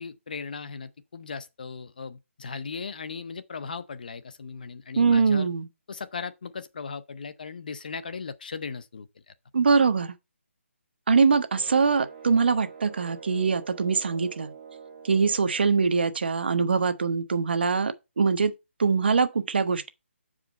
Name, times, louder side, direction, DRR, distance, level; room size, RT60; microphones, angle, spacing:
voice 1, 0.0-5.5 5.9-9.3, left 5 dB, 40° left, 0.6 m, -37 dB
voice 2, 5.0-5.7 9.5-10.1 11.1-14.5 15.0-18.5 18.8-19.9, right 5 dB, 50° right, 1.0 m, -23 dB
sound 1, 11.5-15.8, right 6 dB, 25° right, 3.4 m, -45 dB
7.3 x 4.9 x 5.1 m
hypercardioid pair, 175°, 7 cm